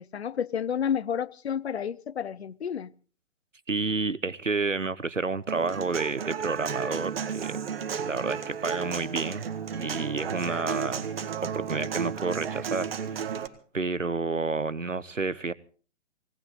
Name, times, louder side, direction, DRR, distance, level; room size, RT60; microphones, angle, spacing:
voice 1, 0.0-2.9, left 8 dB, 60° left, 0.8 m, -30 dB
voice 2, 3.7-7.6 8.0-9.4 9.7-11.1 11.4-13.4 13.7-15.5, right 3 dB, 90° right, 0.9 m, -30 dB
Human voice / Acoustic guitar, 5.5-13.5, right 7 dB, 50° right, 1.9 m, -33 dB
19.0 x 18.0 x 3.9 m
figure-of-eight pair, 120°, 37 cm